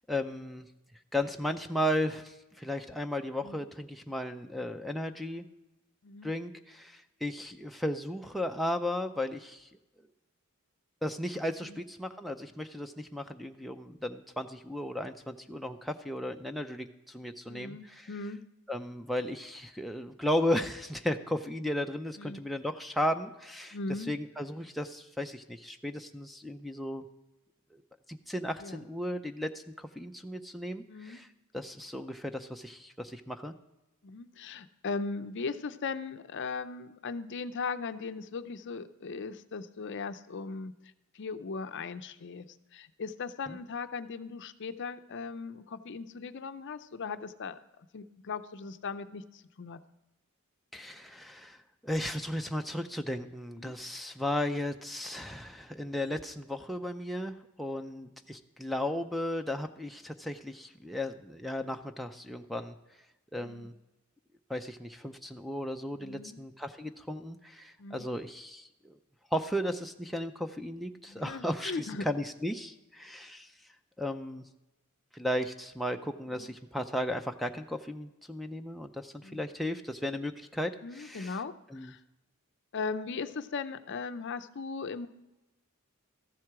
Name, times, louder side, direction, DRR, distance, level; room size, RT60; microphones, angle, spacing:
voice 1, 0.1-0.7 1.1-5.5 6.2-9.7 11.0-18.1 18.7-23.8 24.1-27.0 28.1-31.3 31.5-33.5 43.5-43.6 50.7-51.6 51.8-62.8 63.3-63.7 64.5-69.0 69.3-73.5 74.0-74.4 75.1-81.4 81.7-81.9, left 1 dB, ahead, 4 dB, 0.4 m, -35 dB
voice 2, 17.5-18.4 22.2-22.4 23.7-24.1 28.6-28.9 30.9-31.2 34.0-42.5 42.7-49.8 53.6-53.8 63.4-63.7 66.0-66.4 67.8-68.1 71.1-72.1 76.3-76.5 79.2-79.4 80.8-82.0 82.7-85.1, left 4 dB, 55° left, 11 dB, 0.5 m, -38 dB
14.0 x 7.6 x 4.8 m, 1.0 s
head